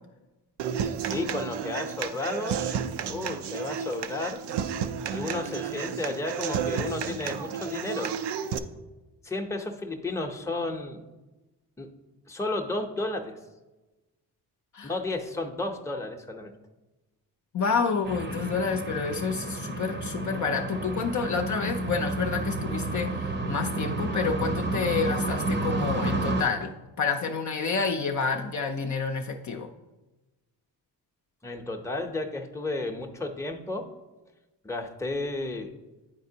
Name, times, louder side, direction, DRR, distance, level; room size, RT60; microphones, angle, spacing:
Human voice / Acoustic guitar, 0.6-8.6, right 7 dB, 70° right, 0.5 m, -32 dB
voice 1, 1.0-2.6 3.1-4.4 5.1-8.1 9.2-11.0 11.8-11.9 12.3-13.4 14.8-16.5 31.4-33.9 34.6-35.7, left 2 dB, 5° left, 3 dB, 0.7 m, -32 dB
voice 2, 17.5-29.7, left 5 dB, 45° left, 3 dB, 0.6 m, -29 dB
sound 1, 18.0-26.4, right 2 dB, 25° right, 0.7 m, -30 dB
9.6 x 4.2 x 2.8 m, 1.1 s
cardioid pair, 70°, 42 cm